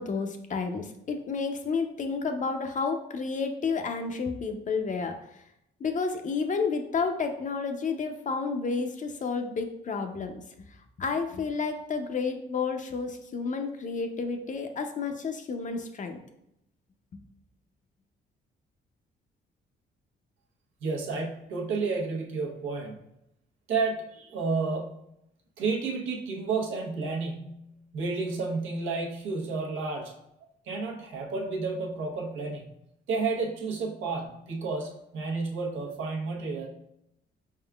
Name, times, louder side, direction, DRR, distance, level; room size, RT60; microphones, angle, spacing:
voice 1, 0.0-5.2 5.8-10.3 11.0-16.2, left 4 dB, 40° left, 6 dB, 0.6 m, -31 dB
voice 2, 20.8-23.0 23.7-25.1 25.6-30.1 30.6-32.7 33.1-36.7, right 4 dB, 85° right, -1 dB, 0.9 m, -31 dB
4.6 x 3.6 x 2.3 m, 0.80 s
cardioid pair, 90°, 20 cm